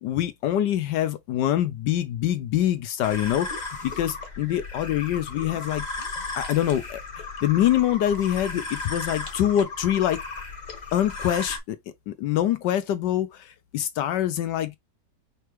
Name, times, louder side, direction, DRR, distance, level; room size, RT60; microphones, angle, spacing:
voice 1, 0.0-3.5 3.8-5.8 6.3-10.2 10.9-11.8 12.1-14.7, left 11 dB, 75° left, 1.2 m, -25 dB
sound 1, 3.0-11.6, left 3 dB, 30° left, 1.0 m, -35 dB
5.5 x 3.1 x 3.0 m
omnidirectional pair, 1.9 m